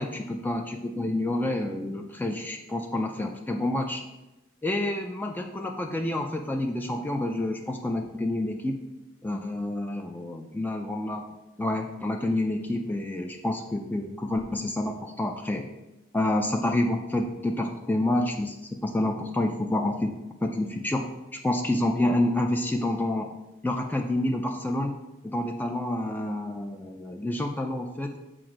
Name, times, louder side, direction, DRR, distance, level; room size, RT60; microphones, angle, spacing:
voice 1, 0.0-4.0 4.6-8.8 9.2-11.3 11.6-15.7 16.1-20.1 20.4-23.3 23.6-25.0 25.2-28.2, left 1 dB, 10° left, 3 dB, 0.3 m, -28 dB
7.5 x 2.6 x 4.9 m, 0.98 s
head